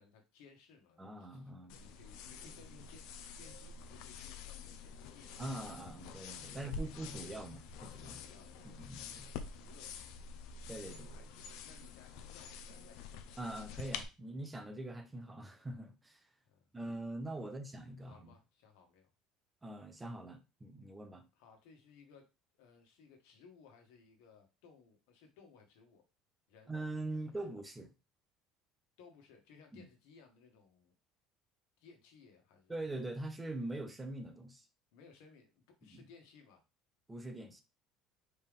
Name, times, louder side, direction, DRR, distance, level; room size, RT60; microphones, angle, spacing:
voice 1, 0.0-5.4 5.8-6.0 6.5-7.3 8.0-10.3 10.8-13.2 16.4-16.6 17.4-17.5 18.0-19.1 21.3-22.2 22.6-26.0 26.5-26.7 27.2-27.5 29.0-30.9 31.8-32.7 34.9-36.6, left 5 dB, 85° left, 1.5 m, -61 dB
voice 2, 1.0-1.8 5.4-8.2 8.6-9.3 10.7-11.1 13.4-16.2 16.7-18.3 19.6-21.3 26.7-27.9 29.7-29.9 32.7-34.7 35.9-36.0 37.1-37.6, right 2 dB, 10° right, 0.5 m, -43 dB
sound 1, 1.7-14.0, left 5 dB, 65° left, 0.6 m, -47 dB
4.5 x 3.4 x 3.5 m
cardioid pair, 175°, 0 cm